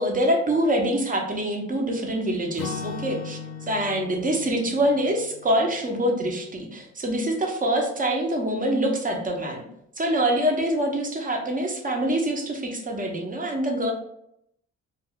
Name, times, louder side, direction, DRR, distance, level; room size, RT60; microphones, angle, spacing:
voice 1, 0.0-3.4 3.7-9.6 10.0-13.9, right 1 dB, 25° right, 2 dB, 0.7 m, -25 dB
Acoustic guitar / Strum, 2.6-6.5, left 6 dB, 75° left, 0.5 m, -38 dB
2.4 x 2.3 x 3.5 m, 0.76 s
cardioid pair, 90°, 30 cm